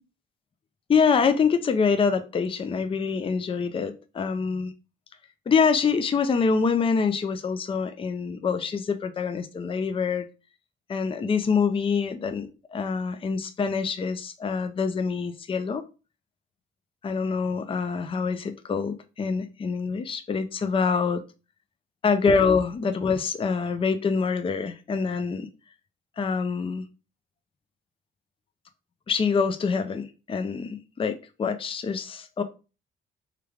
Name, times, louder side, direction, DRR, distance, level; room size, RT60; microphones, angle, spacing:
voice 1, 0.9-4.7 5.5-10.3 10.9-15.8 17.0-21.2 22.0-25.5 26.2-26.8 29.1-32.4, left 5 dB, 25° left, 0.5 m, -25 dB
3.4 x 3.3 x 3.5 m
cardioid pair, 90°, 20 cm